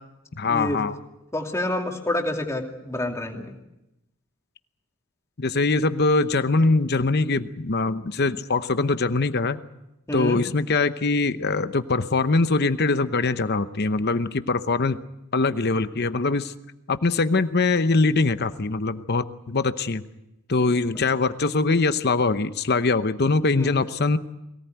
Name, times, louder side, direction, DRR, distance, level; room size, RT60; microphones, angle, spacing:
voice 1, 0.4-1.0 5.4-9.6 10.1-15.0 15.3-16.5 16.9-20.0 20.5-24.2, left 3 dB, 45° left, 11 dB, 0.9 m, -22 dB
voice 2, 1.3-3.5 10.1-10.4 23.6-23.8, left 1 dB, 15° left, 2 dB, 2.6 m, -28 dB
23.0 x 18.0 x 9.2 m, 0.91 s
head